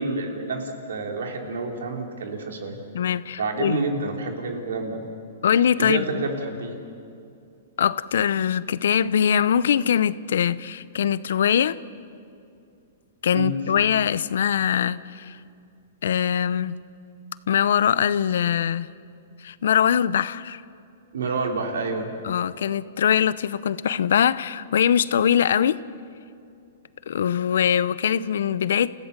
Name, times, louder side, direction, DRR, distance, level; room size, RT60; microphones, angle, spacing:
voice 1, 0.0-2.8 3.4-5.1 5.8-6.8 13.3-13.6 21.1-22.1, right 3 dB, 85° right, 3 dB, 3.2 m, -28 dB
voice 2, 2.9-3.8 5.4-6.2 7.8-11.8 13.2-15.4 16.0-16.8 17.5-18.9 19.4-20.6 22.2-25.8 27.1-28.9, left 8 dB, 75° left, 18 dB, 0.7 m, -22 dB
28.5 x 15.5 x 6.7 m, 2.5 s
hypercardioid pair, 135°, 0 cm